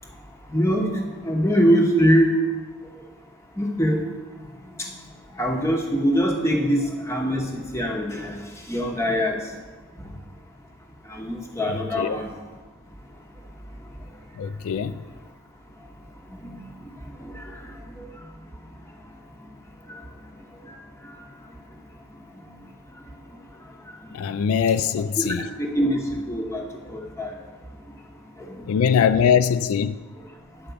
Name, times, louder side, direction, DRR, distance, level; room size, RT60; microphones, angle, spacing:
voice 1, 0.5-2.3 3.6-4.1 4.6-5.0 5.3-9.5 10.0-10.1 11.0-12.3 16.3-18.3 19.9-20.0 20.6-21.2 22.3-22.5 22.9-23.0 23.8-24.0 25.0-27.4 27.9-28.0 28.4-28.7 28.9-29.0, equal, 15° left, 1.0 m, -24 dB
voice 2, 14.4-14.9 24.1-25.4 28.7-30.0, left 7 dB, 80° left, 0.3 m, -21 dB
9.3 x 5.1 x 6.9 m
head